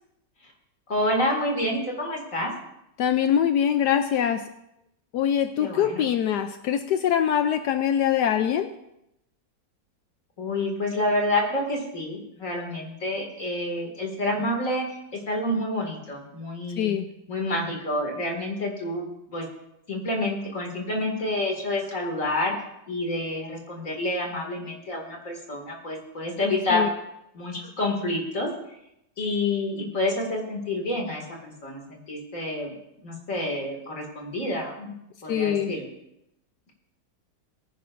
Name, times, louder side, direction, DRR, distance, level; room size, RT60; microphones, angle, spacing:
voice 1, 0.9-2.5 5.6-6.0 10.4-15.0 15.3-16.9 17.3-19.5 19.9-22.5 22.9-26.8 27.3-28.5 29.2-32.7 33.0-34.9 35.2-35.9, left 1 dB, 45° left, 1 dB, 2.6 m, -28 dB
voice 2, 3.0-4.4 5.1-8.7 16.8-17.1 26.7-26.9 35.3-35.7, left 9 dB, 75° left, 8 dB, 1.1 m, -23 dB
20.5 x 10.0 x 2.6 m, 0.84 s
omnidirectional pair, 1.9 m